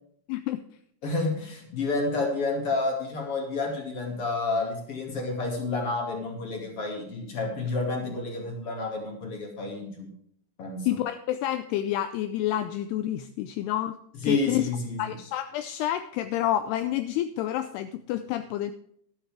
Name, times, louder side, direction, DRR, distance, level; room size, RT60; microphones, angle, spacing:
voice 1, 0.3-0.6 10.9-14.0 14.3-14.7 15.0-18.7, left 12 dB, 85° left, 10 dB, 2.4 m, -29 dB
voice 2, 1.0-10.1 10.6-10.9 14.2-15.0, left 3 dB, 40° left, 2 dB, 2.6 m, -30 dB
12.5 x 12.0 x 3.6 m, 0.68 s
omnidirectional pair, 5.3 m